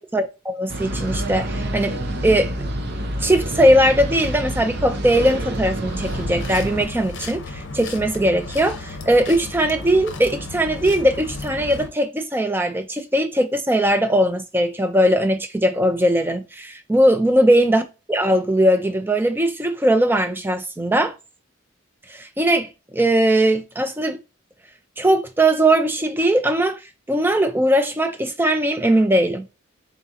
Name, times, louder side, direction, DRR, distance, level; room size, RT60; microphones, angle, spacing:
voice 1, 0.0-2.0 2.2-2.5 3.2-17.8 18.1-21.1 22.1-24.2 25.0-26.8 27.1-29.5, right 1 dB, 10° right, 0.4 m, -19 dB
sound 1, 0.7-6.8, right 1 dB, 50° right, 0.6 m, -28 dB
sound 2, 5.8-11.9, left 2 dB, 60° left, 0.7 m, -34 dB
3.9 x 3.6 x 2.8 m
head